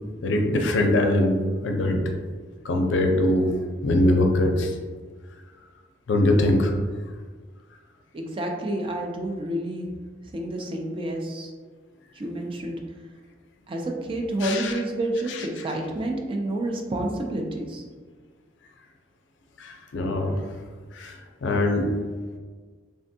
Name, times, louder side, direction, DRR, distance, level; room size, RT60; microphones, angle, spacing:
voice 1, 0.2-2.0 2.6-3.5 3.8-4.7 6.1-6.7 14.4-14.8 15.3-15.5 19.6-20.4 20.9-21.9, left 1 dB, 80° left, 3 dB, 0.4 m, -22 dB
voice 2, 8.1-9.9 10.3-11.5 12.2-12.8 13.7-17.8, right 1 dB, 30° right, 1 dB, 0.4 m, -29 dB
3.4 x 2.2 x 2.6 m, 1.5 s
head